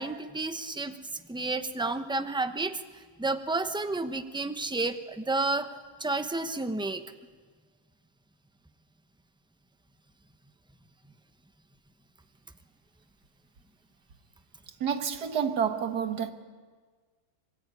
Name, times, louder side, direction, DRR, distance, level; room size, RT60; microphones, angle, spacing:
voice 1, 0.0-5.7 6.0-7.0, right 2 dB, 5° right, 0.6 m, -31 dB
voice 2, 14.8-16.3, right 7 dB, 70° right, 1.9 m, -29 dB
25.0 x 22.0 x 9.8 m
omnidirectional pair, 1.8 m